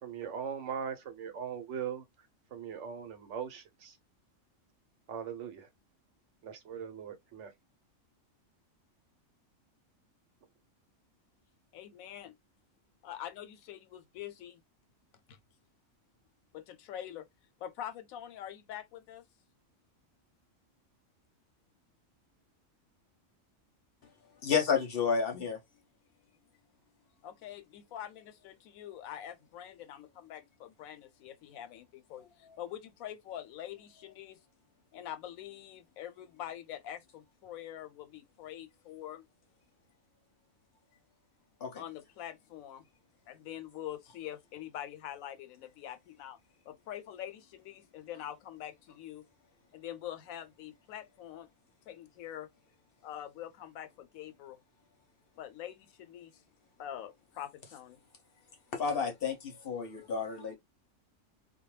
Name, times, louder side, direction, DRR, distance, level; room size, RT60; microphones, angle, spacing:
voice 1, 0.0-2.0 2.5-4.0 5.1-5.7 6.4-7.5, right 8 dB, 65° right, 0.9 m, -40 dB
voice 2, 11.7-12.4 13.0-14.6 15.3-15.4 16.5-17.3 17.6-19.2 27.2-34.4 34.9-39.3 41.8-42.9 43.3-46.4 46.7-49.3 49.7-51.5 51.9-52.5 53.0-54.6 55.4-56.4 56.8-58.0, left 11 dB, 90° left, 1.0 m, -45 dB
voice 3, 24.4-25.6 41.6-41.8 58.7-60.6, left 6 dB, 55° left, 0.7 m, -31 dB
2.3 x 2.1 x 3.0 m
omnidirectional pair, 1.4 m